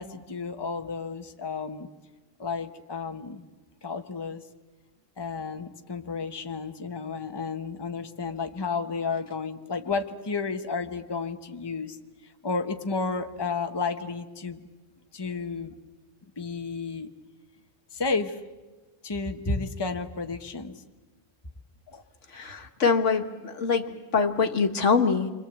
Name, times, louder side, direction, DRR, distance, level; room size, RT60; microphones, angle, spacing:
voice 1, 0.0-1.9 2.4-3.5 3.8-4.4 5.2-12.0 12.4-14.6 15.1-15.7 16.4-17.1 17.9-18.4 19.0-20.7 21.9-22.0, left 4 dB, 20° left, 6 dB, 1.1 m, -32 dB
voice 2, 22.3-25.3, left 5 dB, 70° left, 7 dB, 1.7 m, -24 dB
29.0 x 25.0 x 8.1 m, 1.2 s
omnidirectional pair, 1.3 m